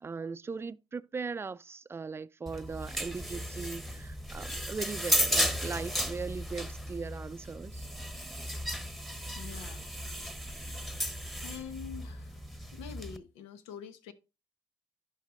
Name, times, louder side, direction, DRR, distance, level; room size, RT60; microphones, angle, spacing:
voice 1, 0.0-7.9, right 4 dB, 25° right, 0.5 m, -39 dB
sound 1, 2.5-13.2, equal, ahead, 1.1 m, -35 dB
voice 2, 9.3-9.9 11.4-12.4 12.7-14.1, left 8 dB, 90° left, 1.1 m, -45 dB
11.0 x 5.4 x 3.8 m
supercardioid pair, 80°, 9 cm